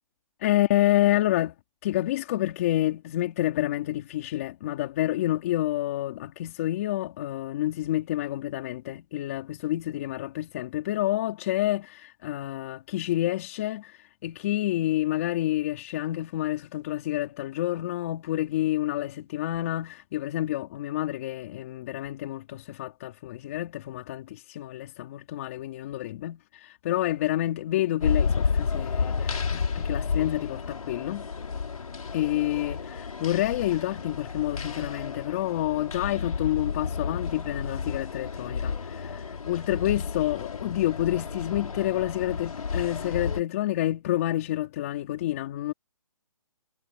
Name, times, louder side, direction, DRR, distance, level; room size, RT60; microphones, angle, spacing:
voice 1, 0.4-1.5 1.8-31.3 32.1-45.7, left 14 dB, 25° left, 4.1 m, -28 dB
sound 1, 28.0-43.4, left 5 dB, 80° left, 5.2 m, -31 dB
hypercardioid pair, 175°, 18 cm